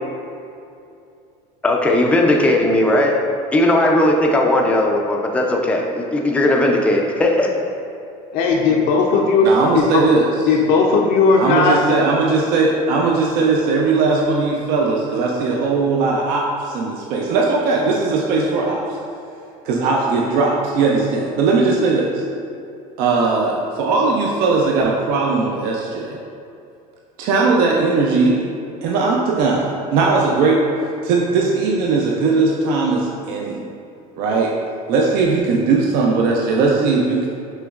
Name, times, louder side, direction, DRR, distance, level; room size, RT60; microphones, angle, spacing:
voice 1, 1.6-3.2 3.5-7.5, left 1 dB, 5° left, 0 dB, 0.4 m, -17 dB
voice 2, 8.3-9.8 10.5-11.8, left 4 dB, 60° left, -1 dB, 0.5 m, -16 dB
voice 3, 9.4-10.3 11.4-19.0 19.6-22.1 23.0-26.2 27.2-28.4 28.8-30.6 31.0-33.6 34.2-34.6 34.9-37.3, right 3 dB, 60° right, -2 dB, 0.5 m, -18 dB
6.3 x 3.1 x 2.4 m, 2.5 s
cardioid pair, 135°, 17 cm